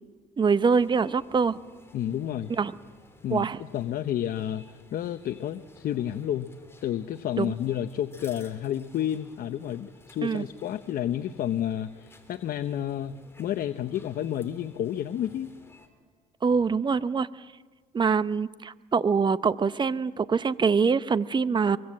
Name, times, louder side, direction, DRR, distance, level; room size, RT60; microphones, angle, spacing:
voice 1, 0.4-1.6 2.5-2.7 3.3-3.6 7.4-7.5 10.2-10.5 16.4-17.3 17.9-21.8, right 5 dB, 25° right, 15 dB, 0.8 m, -24 dB
sound 1, 0.7-15.9, left 2 dB, 15° left, 3.2 m, -55 dB
voice 2, 1.9-2.5 3.2-6.5 6.8-15.5, left 11 dB, 60° left, 10 dB, 0.8 m, -30 dB
23.5 x 23.5 x 7.7 m, 1.4 s
cardioid pair, 110°, 17 cm